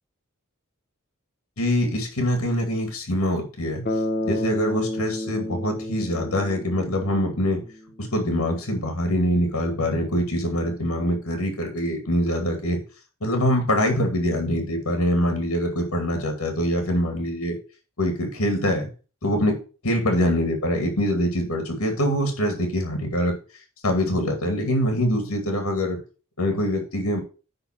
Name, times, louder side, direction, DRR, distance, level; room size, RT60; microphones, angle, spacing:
voice 1, 1.6-3.8 4.2-7.6 8.0-12.8 13.2-17.6 18.0-18.9 19.2-19.5 19.8-23.3 23.8-26.0 26.4-27.2, equal, 80° left, 4 dB, 2.4 m, -24 dB
Bass guitar, 3.9-7.9, left 1 dB, 45° left, 1.3 m, -30 dB
9.8 x 3.9 x 5.9 m, 0.35 s
head